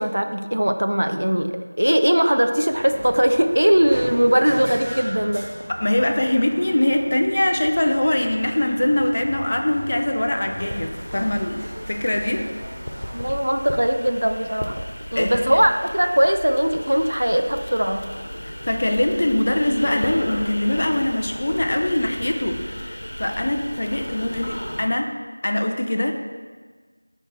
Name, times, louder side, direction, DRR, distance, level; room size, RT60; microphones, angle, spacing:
voice 1, 0.0-5.5 13.1-14.8 15.1-18.1, equal, 65° right, 7 dB, 0.6 m, -20 dB
sound 1, 2.7-13.3, equal, 25° right, 1.5 m, -36 dB
voice 2, 5.8-12.5 15.1-15.6 18.4-25.2 25.4-26.1, left 1 dB, 35° left, 4 dB, 0.5 m, -22 dB
sound 2, 10.6-24.8, equal, 75° left, 1.1 m, -35 dB
9.6 x 4.5 x 4.6 m, 1.5 s
figure-of-eight pair, 175°, 0 cm